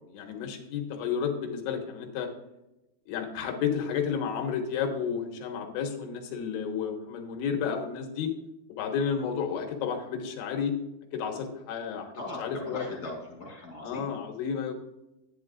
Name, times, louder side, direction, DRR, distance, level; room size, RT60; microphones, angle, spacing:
voice 1, 0.1-2.3 3.1-8.3 8.7-10.7 11.1-12.1 12.4-12.8 13.8-14.7, left 7 dB, 85° left, 3 dB, 3.4 m, -31 dB
voice 2, 12.1-14.2, left 2 dB, 35° left, -2 dB, 1.7 m, -39 dB
10.5 x 9.4 x 2.4 m, 0.92 s
omnidirectional pair, 5.2 m